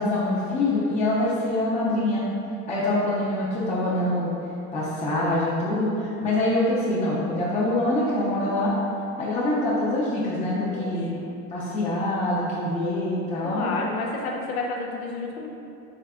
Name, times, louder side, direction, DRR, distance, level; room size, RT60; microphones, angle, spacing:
voice 1, 0.0-2.3 2.7-4.3 4.7-8.8 9.2-11.1 11.5-13.7, left 1 dB, 15° left, -8 dB, 0.5 m, -25 dB
voice 2, 10.6-11.3 13.4-15.5, left 3 dB, 85° left, -1 dB, 0.5 m, -31 dB
3.7 x 3.2 x 2.2 m, 2.7 s
hypercardioid pair, 95°, 42 cm